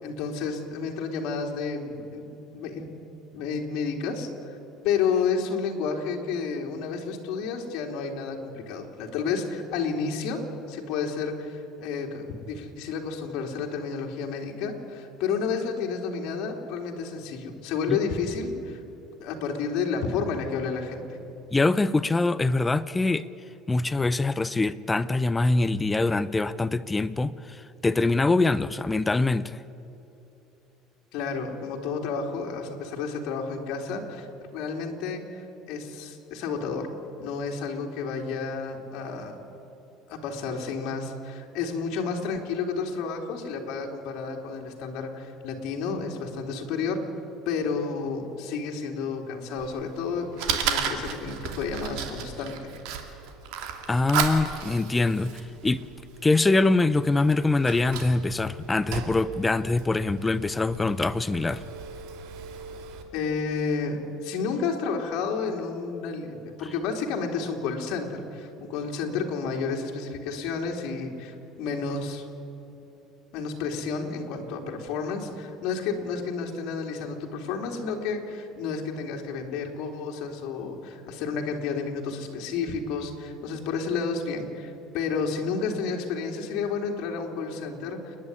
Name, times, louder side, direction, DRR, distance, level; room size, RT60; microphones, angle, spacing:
voice 1, 0.0-2.2 2.5-2.9 3.3-4.6 4.8-18.8 19.2-21.1 31.1-36.9 37.2-39.4 40.1-47.0 47.4-52.7 63.1-72.3 73.3-88.2, left 5 dB, 65° left, 1 dB, 3.3 m, -31 dB
voice 2, 21.5-23.3 23.7-29.6 53.9-55.3 55.6-55.8 56.2-61.6, left 3 dB, 10° left, 16 dB, 0.5 m, -24 dB
Fire, 49.6-63.0, right 7 dB, 70° right, 2.5 m, -35 dB
29.5 x 11.0 x 9.7 m, 3.0 s
cardioid pair, 145°, 0 cm